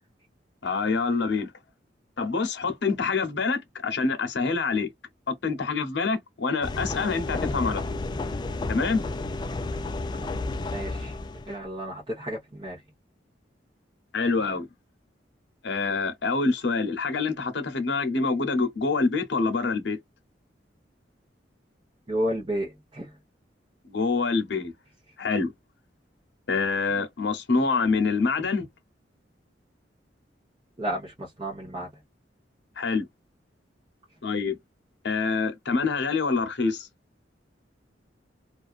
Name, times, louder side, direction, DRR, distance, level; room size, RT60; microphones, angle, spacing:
voice 1, 0.6-1.5 2.2-4.9 5.3-8.0 8.7-9.0 14.1-14.7 15.6-20.0 23.8-24.7 25.2-25.5 26.5-28.7 32.8-33.1 34.2-34.6 35.0-36.9, left 4 dB, 70° left, 0.8 m, -26 dB
sound 1, 6.6-11.5, left 2 dB, 25° left, 0.3 m, -31 dB
voice 2, 10.7-11.1 11.5-12.8 22.1-23.1 30.8-31.9, equal, 25° right, 0.9 m, -32 dB
2.5 x 2.3 x 2.3 m
head